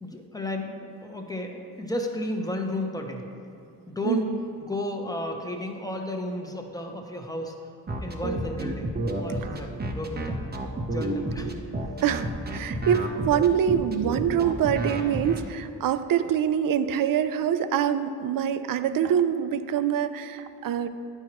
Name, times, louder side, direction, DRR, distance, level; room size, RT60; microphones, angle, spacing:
voice 1, 0.0-3.2 3.9-4.3 4.6-7.6 8.0-8.9 9.2-10.4 10.9-11.5, left 1 dB, 10° left, 2 dB, 0.9 m, -33 dB
voice 2, 4.0-4.4 9.4-9.5 12.0-20.9, right 9 dB, 60° right, 11 dB, 0.5 m, -25 dB
sound 1, 7.9-15.4, right 1 dB, 25° right, 0.7 m, -30 dB
9.5 x 4.6 x 3.0 m, 2.6 s
supercardioid pair, 55°, 39 cm